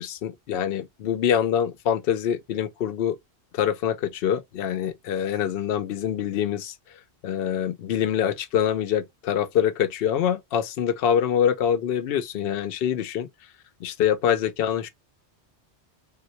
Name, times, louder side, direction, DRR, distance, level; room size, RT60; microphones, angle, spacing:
voice 1, 0.0-3.2 3.5-6.7 7.2-13.3 13.8-14.9, left 9 dB, 65° left, 0.7 m, -25 dB
3.7 x 2.2 x 2.7 m
omnidirectional pair, 1.2 m